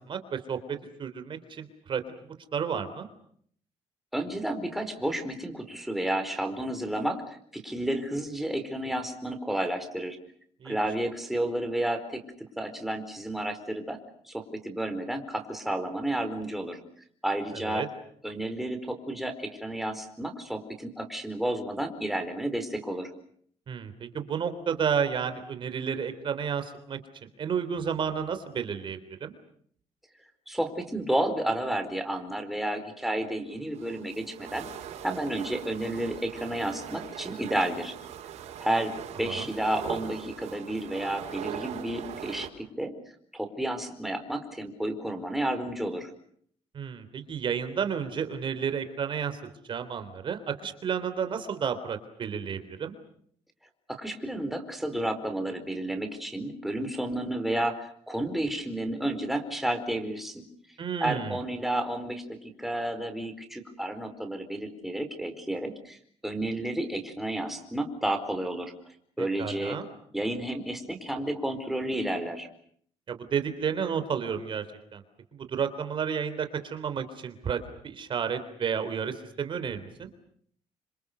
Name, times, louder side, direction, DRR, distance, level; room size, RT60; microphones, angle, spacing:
voice 1, 0.1-2.0 2.5-3.1 10.6-10.8 17.7-17.9 23.7-29.3 39.3-39.5 46.7-49.4 49.6-52.9 60.8-61.4 69.2-69.8 73.1-74.6 74.9-75.0 75.3-80.1, right 7 dB, 45° right, 9 dB, 3.4 m, -31 dB
voice 2, 4.1-10.2 10.6-12.2 12.6-14.0 14.3-16.8 17.2-17.9 18.2-23.1 30.5-34.7 35.0-37.9 38.6-42.9 43.3-46.1 53.9-60.4 61.0-68.7 69.2-69.8 70.1-72.5, right 1 dB, ahead, 5 dB, 4.5 m, -31 dB
sound 1, 33.5-42.5, right 9 dB, 80° right, 6.0 m, -41 dB
29.5 x 27.0 x 6.8 m, 0.63 s
cardioid pair, 130°, 11 cm